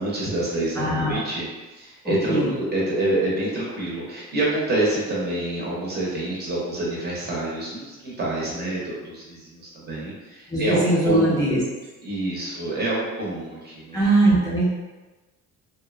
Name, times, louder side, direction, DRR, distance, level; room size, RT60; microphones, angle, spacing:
voice 1, 0.0-1.5 1.7-11.6 12.0-14.1, right 1 dB, 30° right, -5 dB, 0.7 m, -27 dB
voice 2, 0.8-1.2 2.3-2.5 10.5-11.6 13.9-14.7, right 2 dB, 10° left, -9 dB, 0.4 m, -20 dB
2.7 x 2.1 x 2.4 m, 1.2 s
cardioid pair, 150°, 32 cm